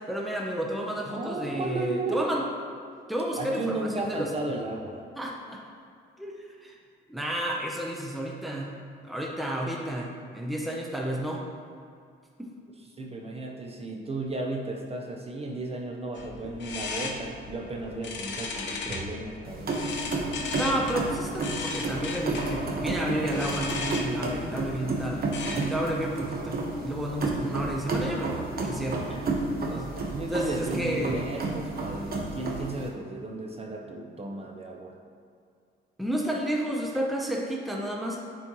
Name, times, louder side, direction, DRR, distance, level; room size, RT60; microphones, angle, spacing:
voice 1, 0.1-2.4 3.1-4.3 5.2-5.6 6.2-6.7 7.1-8.7 9.0-11.4 12.4-12.5 20.5-29.1 29.7-29.9 30.3-31.3 36.0-38.2, right 1 dB, ahead, -1 dB, 0.8 m, -31 dB
voice 2, 1.1-2.3 3.4-5.0 13.0-19.7 29.1-29.3 30.1-35.0, right 2 dB, 30° right, 0 dB, 0.9 m, -34 dB
sound 1, 16.1-25.9, left 4 dB, 65° left, 0.9 m, -37 dB
sound 2, 19.4-32.9, right 3 dB, 50° right, 1.2 m, -31 dB
9.6 x 4.3 x 3.1 m, 2.3 s
cardioid pair, 90°, 20 cm